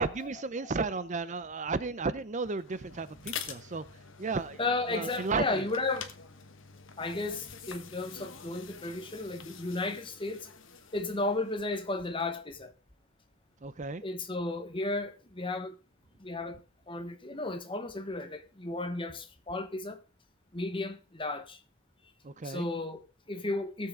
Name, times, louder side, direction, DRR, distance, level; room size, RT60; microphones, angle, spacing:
voice 1, 0.0-3.8 4.2-4.6 4.9-5.7 13.6-14.0 22.2-22.7, right 4 dB, 35° right, 0.6 m, -33 dB
sound 1, 2.5-12.3, left 7 dB, 65° left, 1.3 m, -47 dB
voice 2, 4.6-6.1 7.0-10.4 10.9-12.7 14.0-15.8 16.2-16.6 16.9-20.0 20.5-21.6 22.4-23.9, left 2 dB, 25° left, 1.1 m, -34 dB
18.0 x 7.4 x 3.7 m
head